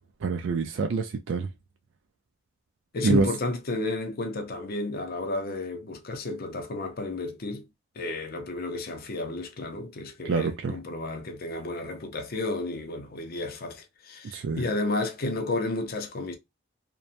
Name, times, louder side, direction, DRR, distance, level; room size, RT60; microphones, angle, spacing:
voice 1, 0.2-1.5 3.0-3.3 10.2-10.8 14.2-14.6, right 4 dB, 60° right, 0.3 m, -26 dB
voice 2, 2.9-7.7 8.0-16.4, left 2 dB, 45° left, 0.5 m, -32 dB
2.8 x 2.1 x 2.4 m
head